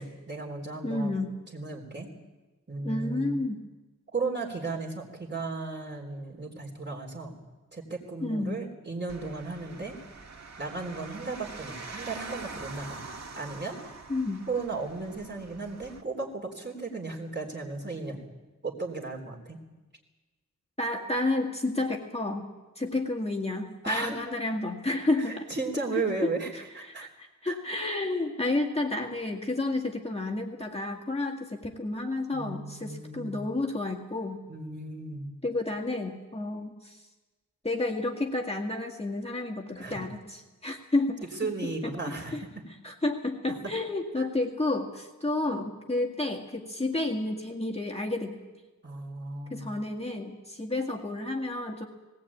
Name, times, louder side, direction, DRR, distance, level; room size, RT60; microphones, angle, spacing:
voice 1, 0.0-1.2 1.5-2.1 2.7-3.4 4.1-7.4 7.7-10.0 10.6-13.0 13.4-13.8 14.5-18.2 18.6-19.6 23.8-24.2 25.2-27.0 27.4-27.6 32.3-33.5 34.5-35.3 39.8-40.0 41.4-42.4 44.2-44.3 48.8-49.8, right 3 dB, 35° right, 1 dB, 3.7 m, -35 dB
voice 2, 0.8-1.4 2.8-3.6 8.2-8.6 14.1-14.4 20.8-22.5 22.8-25.4 25.9-34.4 35.4-37.0 37.6-41.5 42.1-42.4 42.8-48.5 49.5-51.8, left 2 dB, 20° left, 0 dB, 1.9 m, -31 dB
sound 1, 9.1-16.0, right 3 dB, 60° right, 1.6 m, -44 dB
19.0 x 18.5 x 8.6 m, 1.2 s
wide cardioid pair, 100°, 31 cm